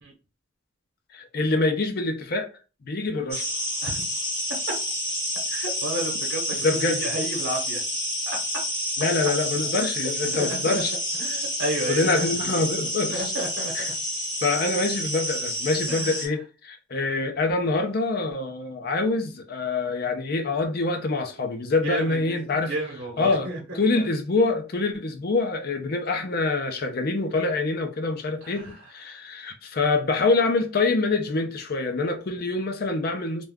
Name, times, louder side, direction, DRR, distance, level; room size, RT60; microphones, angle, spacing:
voice 1, 1.1-2.5 2.8-3.5 6.6-7.0 9.0-10.9 11.9-13.2 13.7-13.8 14.4-22.7 23.2-23.5 23.7-33.4, left 3 dB, 50° left, 0.5 m, -25 dB
sound 1, 3.3-16.3, equal, 15° right, 1.0 m, -29 dB
voice 2, 5.5-7.8 9.6-9.9 10.3-10.8 11.2-12.4 13.1-13.9 15.9-16.2 21.8-23.6 23.9-24.1 28.4-28.7 29.1-29.2, right 1 dB, 80° right, 0.9 m, -32 dB
2.4 x 2.3 x 3.4 m
head